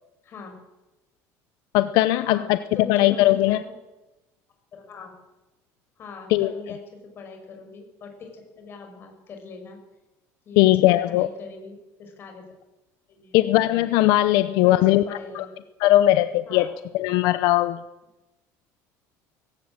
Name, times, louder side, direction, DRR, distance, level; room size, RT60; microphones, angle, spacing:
voice 1, 0.2-0.5 2.2-3.6 4.7-5.1 6.0-6.8 7.2-9.8 10.4-10.7 11.1-12.5 13.1-13.6 14.6-15.5 16.4-16.7, left 4 dB, 35° left, 4 dB, 5.8 m, -41 dB
voice 2, 1.7-2.6 2.9-3.6 6.3-6.5 10.6-11.3 13.3-15.0 15.3-15.4 15.8-16.7 16.9-17.8, left 15 dB, 75° left, 12 dB, 0.8 m, -19 dB
19.0 x 17.0 x 9.0 m, 1.0 s
cardioid pair, 165°, 7 cm